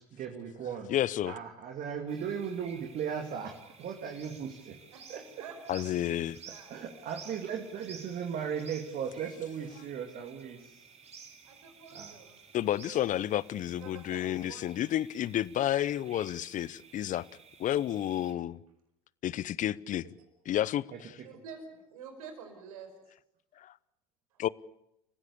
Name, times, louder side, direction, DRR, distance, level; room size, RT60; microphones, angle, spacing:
voice 1, 0.0-0.9 1.2-4.8 5.1-5.2 6.7-10.9 11.9-12.2 20.9-21.0, right 7 dB, 50° right, 4 dB, 2.6 m, -37 dB
voice 2, 0.9-1.3 5.7-6.4 12.5-17.2 17.6-18.6 19.2-20.1 20.5-21.1 23.6-23.7 24.4-24.5, left 12 dB, 45° left, 22 dB, 0.7 m, -31 dB
sound 1, 2.1-18.3, right 6 dB, 35° right, 3.7 m, -53 dB
voice 3, 4.9-5.8 6.5-7.3 11.4-12.4 13.8-14.8 21.2-22.9 24.3-24.4, right 6 dB, 80° right, 6 dB, 4.9 m, -49 dB
29.0 x 15.5 x 8.4 m, 0.88 s
hypercardioid pair, 70°, 18 cm